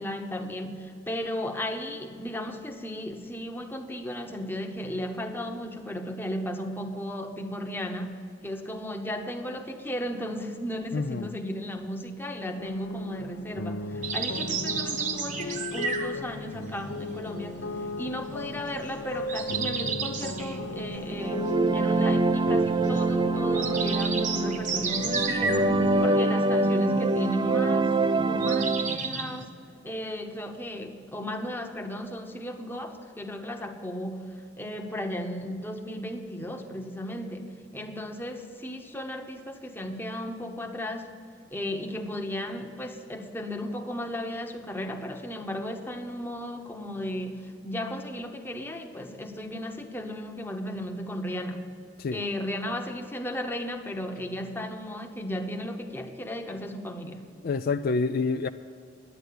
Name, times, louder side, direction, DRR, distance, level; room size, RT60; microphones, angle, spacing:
voice 1, 0.0-17.7 18.0-29.5 29.8-41.2 41.5-51.7 52.1-57.3, left 1 dB, 10° left, 0.9 m, -35 dB
voice 2, 10.9-11.3 52.0-52.2 57.4-58.5, left 4 dB, 55° left, 0.4 m, -27 dB
sound 1, 12.6-26.1, left 2 dB, 85° left, 0.8 m, -36 dB
sound 2, 14.0-29.4, right 4 dB, 45° right, 1.0 m, -35 dB
sound 3, 21.0-29.0, right 3 dB, 25° right, 0.3 m, -25 dB
11.0 x 9.2 x 8.5 m
head